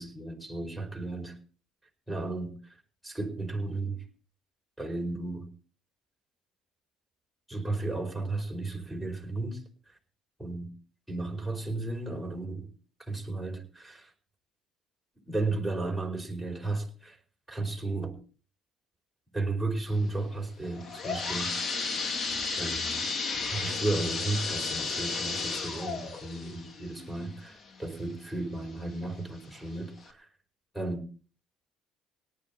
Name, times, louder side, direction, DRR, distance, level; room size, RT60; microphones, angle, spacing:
voice 1, 0.0-1.4 2.1-2.8 3.0-4.0 4.8-5.5 7.5-9.6 10.4-10.7 11.1-12.7 13.1-14.1 15.2-17.2 17.5-18.2 19.3-21.5 22.6-23.1 23.5-30.3 30.7-31.0, right 2 dB, ahead, 1 dB, 4.9 m, -34 dB
sound 1, 20.6-28.2 28.7-28.8 29.6-29.7 30.1-30.2, left 4 dB, 45° left, 2.7 m, -33 dB
18.0 x 10.5 x 4.4 m, 0.38 s
hypercardioid pair, 70°, 0 cm